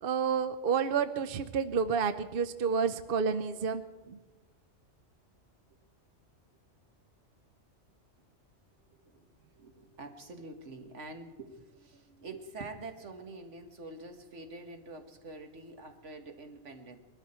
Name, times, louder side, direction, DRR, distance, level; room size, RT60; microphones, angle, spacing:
voice 1, 0.0-4.2, right 6 dB, 55° right, 11 dB, 0.8 m, -30 dB
voice 2, 9.6-17.0, right 2 dB, 75° right, 5 dB, 1.8 m, -46 dB
21.5 x 13.0 x 4.3 m, 1.3 s
omnidirectional pair, 1.2 m